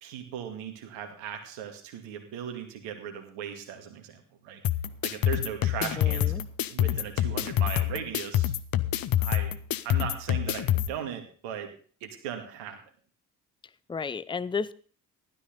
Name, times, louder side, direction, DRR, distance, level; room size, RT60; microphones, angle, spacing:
voice 1, 0.0-4.6 5.0-6.4 6.7-8.5 9.2-9.5 9.8-11.7 12.0-12.8, right 8 dB, 70° right, 6 dB, 2.5 m, -38 dB
sound 1, 4.6-10.9, left 12 dB, 50° left, 1.0 m, -27 dB
voice 2, 5.8-6.4 13.9-14.7, left 5 dB, 10° left, 18 dB, 0.6 m, -32 dB
15.5 x 12.5 x 4.0 m, 0.43 s
figure-of-eight pair, 45°, 46 cm